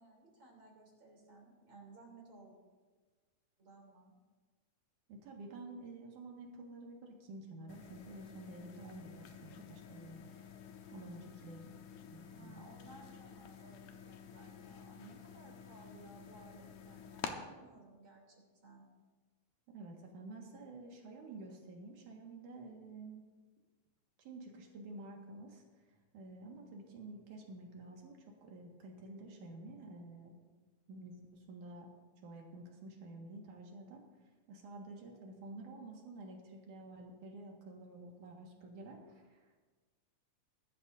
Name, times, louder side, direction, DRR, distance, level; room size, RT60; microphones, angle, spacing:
voice 1, 0.0-2.5 3.6-4.2 12.3-18.8, right 2 dB, 40° right, -1 dB, 3.8 m, -58 dB
voice 2, 5.1-10.4 10.9-11.7 12.1-12.6 19.7-23.3 24.2-25.6 26.1-30.4 30.9-31.9 32.2-34.0 34.5-39.6, right 2 dB, 80° right, 0 dB, 3.2 m, -50 dB
sound 1, 7.7-17.3, left 7 dB, 75° left, 2.3 m, -50 dB
22.0 x 12.0 x 2.7 m, 1.4 s
omnidirectional pair, 3.5 m